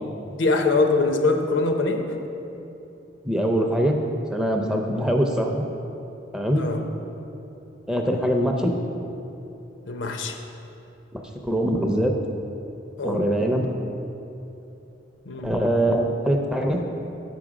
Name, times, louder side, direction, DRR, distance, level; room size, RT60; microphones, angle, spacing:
voice 1, 0.3-2.0 6.6-6.8 9.9-10.4 13.0-13.2 15.3-15.5, left 3 dB, 85° left, 5 dB, 0.7 m, -23 dB
voice 2, 3.3-4.0 4.3-5.6 6.3-6.7 7.9-8.7 11.1-12.1 13.0-13.7 15.4-16.8, equal, 5° right, 2 dB, 0.4 m, -23 dB
6.9 x 6.0 x 4.9 m, 2.9 s
head